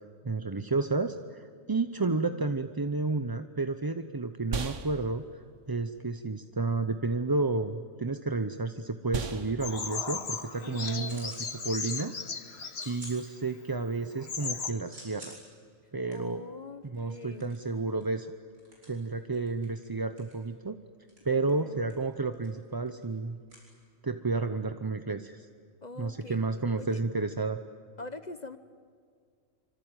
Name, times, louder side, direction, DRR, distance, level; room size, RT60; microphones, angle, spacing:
voice 1, 0.2-11.3 11.6-12.1 12.9-15.4 15.9-16.4 16.8-18.3 18.9-20.8 21.2-23.4 24.0-25.5 26.0-27.6, right 3 dB, 20° right, 9 dB, 0.6 m, -31 dB
sound 1, 3.1-12.8, right 4 dB, 65° right, 1.8 m, -42 dB
Bird vocalization bird call bird song, 9.6-13.2 13.8-13.9 14.2-14.7, left 5 dB, 50° left, 1.7 m, -36 dB
voice 2, 10.6-11.2 16.1-17.5 21.3-21.9 25.8-26.4 26.8-27.0 28.0-28.6, left 3 dB, 35° left, 11 dB, 0.9 m, -43 dB
sound 2, 11.0-11.5 11.9-12.3 12.7-13.9 14.3-24.3, right 1 dB, 85° right, 8.0 m, -53 dB
25.5 x 25.5 x 9.1 m, 2.1 s
omnidirectional pair, 1.4 m